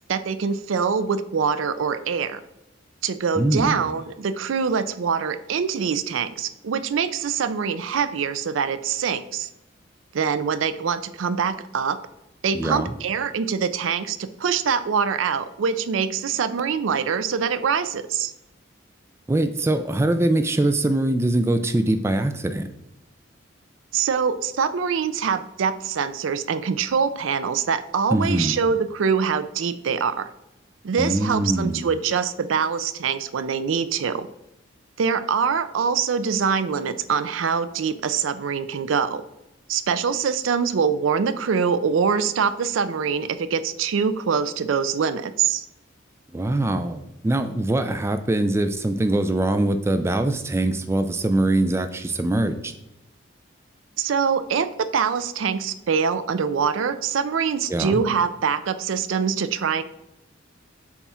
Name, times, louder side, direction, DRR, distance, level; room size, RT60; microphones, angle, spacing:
voice 1, 0.1-2.4 3.0-9.5 10.1-12.0 12.4-18.3 23.9-30.3 30.8-34.3 35.0-39.2 39.7-45.7 54.0-59.8, right 6 dB, 80° right, 13 dB, 0.4 m, -24 dB
voice 2, 3.4-3.8 12.5-12.9 19.3-22.7 28.1-28.5 31.0-31.9 46.3-52.7 57.7-58.0, right 1 dB, 15° right, 8 dB, 0.3 m, -23 dB
7.0 x 2.4 x 5.5 m, 0.88 s
head